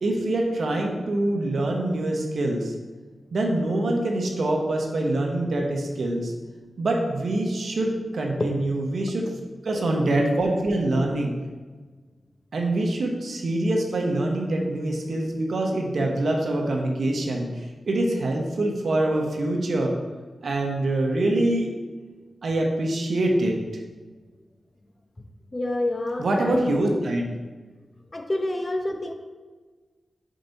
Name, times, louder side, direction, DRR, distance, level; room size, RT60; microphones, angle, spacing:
voice 1, 0.0-2.7 3.3-6.3 6.8-9.3 9.6-11.4 12.5-19.9 20.4-21.7 22.4-23.6 26.2-27.2, right 1 dB, 75° right, 1 dB, 1.0 m, -25 dB
voice 2, 25.5-26.7 28.1-29.1, left 1 dB, 35° left, 4 dB, 0.6 m, -27 dB
5.1 x 4.6 x 4.0 m, 1.4 s
cardioid pair, 70°, 0 cm